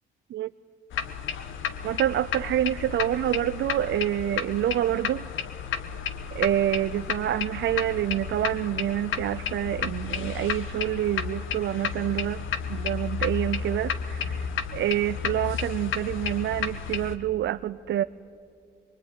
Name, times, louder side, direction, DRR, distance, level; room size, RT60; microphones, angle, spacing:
sound 1, 0.9-17.1, left 7 dB, 80° left, 1.4 m, -32 dB
voice 1, 1.8-5.2 6.3-12.4 12.7-18.0, right 12 dB, 70° right, 11 dB, 0.6 m, -27 dB
24.5 x 24.0 x 9.9 m, 2.3 s
cardioid pair, 90°, 20 cm